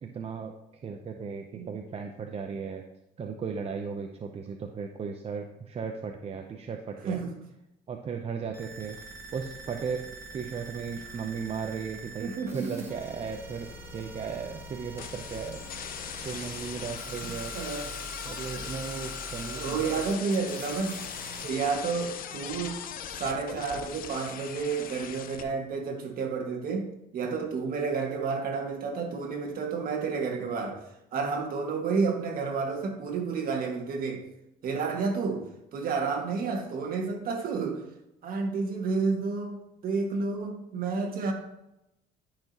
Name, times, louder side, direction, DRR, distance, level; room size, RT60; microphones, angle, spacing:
voice 1, 0.0-2.9 3.2-7.2 7.9-9.0 9.3-15.6 16.2-17.6 18.2-20.0, right 6 dB, 35° right, 4 dB, 0.6 m, -36 dB
sound 1, 8.5-21.5, right 2 dB, 15° right, 2.1 m, -44 dB
voice 2, 12.2-12.8 16.1-16.7 17.2-17.9 19.5-21.0 21.4-22.8 23.2-26.9 27.1-34.2 34.6-35.5 35.7-37.9 38.2-41.3, right 4 dB, 60° right, 2 dB, 1.8 m, -31 dB
sound 2, 15.0-25.4, left 9 dB, 55° left, 0.7 m, -40 dB
12.0 x 5.8 x 2.9 m, 0.86 s
cardioid pair, 110°, 17 cm